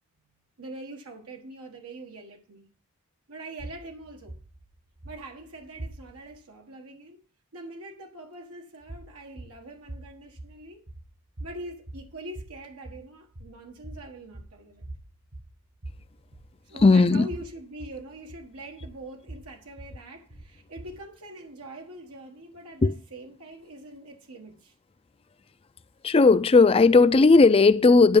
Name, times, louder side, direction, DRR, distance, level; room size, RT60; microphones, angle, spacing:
voice 1, 0.6-2.6 3.3-4.4 5.0-7.2 7.5-10.8 11.4-14.9 16.6-24.7, right 1 dB, 85° right, 1.4 m, -43 dB
sound 1, 3.6-6.4 8.8-21.2, right 1 dB, 60° right, 1.8 m, -44 dB
voice 2, 16.8-17.3 22.8-22.9 26.0-28.2, left 3 dB, 25° left, 0.4 m, -16 dB
11.0 x 5.7 x 5.2 m
head